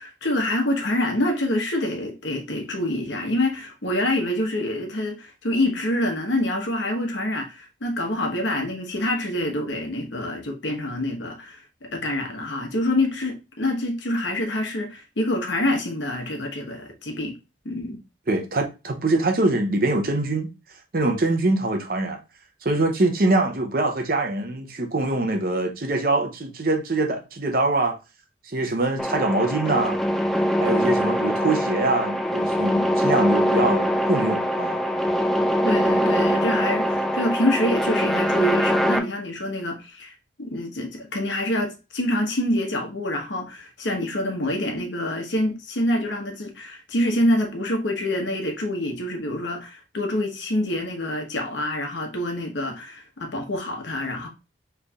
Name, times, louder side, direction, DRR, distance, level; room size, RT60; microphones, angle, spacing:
voice 1, 0.0-17.4 17.6-18.0 35.6-40.1 40.4-54.3, left 1 dB, 80° left, 1.1 m, -26 dB
voice 2, 18.3-20.5 20.9-22.2 22.6-28.0 28.5-30.0 30.6-34.8, right 2 dB, 50° right, 0.7 m, -23 dB
sound 1, 29.0-39.0, equal, ahead, 0.4 m, -22 dB
4.2 x 3.3 x 2.3 m
head